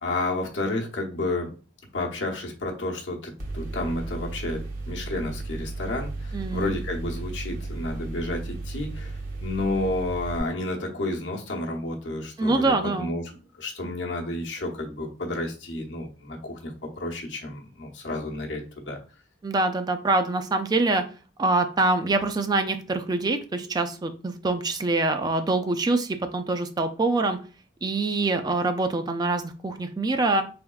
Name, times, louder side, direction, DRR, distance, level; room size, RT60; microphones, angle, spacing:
voice 1, 0.0-1.5 1.9-19.0, left 2 dB, 75° left, 0 dB, 0.9 m, -31 dB
Mechanical fan, 3.4-10.4, right 3 dB, 45° right, 0.8 m, -34 dB
voice 2, 6.3-6.7 12.4-13.1 19.4-21.0 21.4-27.4 27.8-30.4, right 2 dB, 20° right, 7 dB, 0.3 m, -25 dB
3.8 x 3.4 x 2.3 m, 0.37 s
head